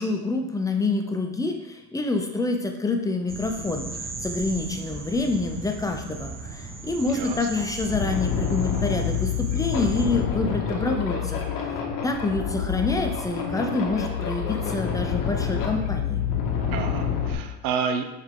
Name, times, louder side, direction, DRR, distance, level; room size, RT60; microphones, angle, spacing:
voice 1, 0.0-11.7 12.0-16.2, left 3 dB, 10° left, 3 dB, 0.5 m, -27 dB
sound 1, 3.3-10.1, right 3 dB, 25° right, 1.0 m, -37 dB
sound 2, 6.9-7.0 7.4-17.3, left 7 dB, 60° left, 1.6 m, -27 dB
voice 2, 7.0-7.5 16.7-18.0, right 6 dB, 65° right, 7 dB, 0.8 m, -29 dB
7.7 x 5.7 x 3.7 m, 0.97 s
cardioid pair, 160°, 38 cm